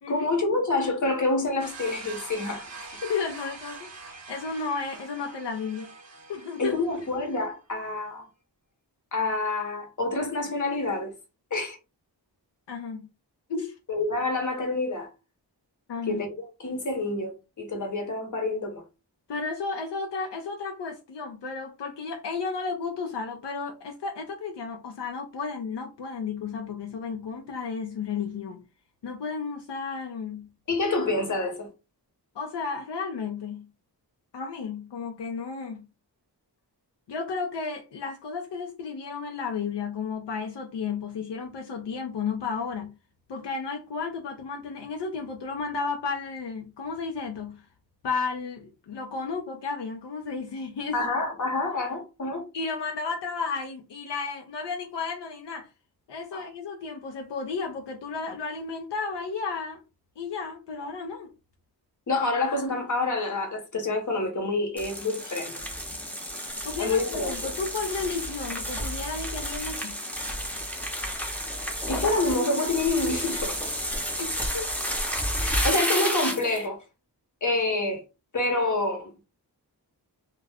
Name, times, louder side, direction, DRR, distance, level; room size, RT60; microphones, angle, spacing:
voice 1, 0.1-3.0 6.6-8.3 9.1-11.1 11.5-11.8 13.9-15.1 16.1-16.3 16.6-18.8 30.7-31.7 50.9-52.4 56.3-56.5 62.1-65.6 66.8-67.5 71.9-73.6 75.4-76.8 77.4-78.0 78.3-79.1, left 2 dB, 45° left, 0.9 m, -27 dB
sound 1, 1.6-7.5, right 4 dB, 40° right, 0.6 m, -44 dB
voice 2, 3.0-5.9 6.3-6.8 12.7-13.1 13.5-13.7 15.9-16.2 19.3-28.6 29.0-30.5 32.3-33.7 34.3-35.8 37.1-42.9 43.3-47.6 48.0-51.1 52.5-55.7 56.1-59.8 60.2-61.3 66.6-70.1 74.2-74.7, left 5 dB, 80° left, 0.6 m, -33 dB
sound 2, 64.8-76.6, equal, 5° left, 0.7 m, -31 dB
2.3 x 2.1 x 3.4 m
wide cardioid pair, 90°, 41 cm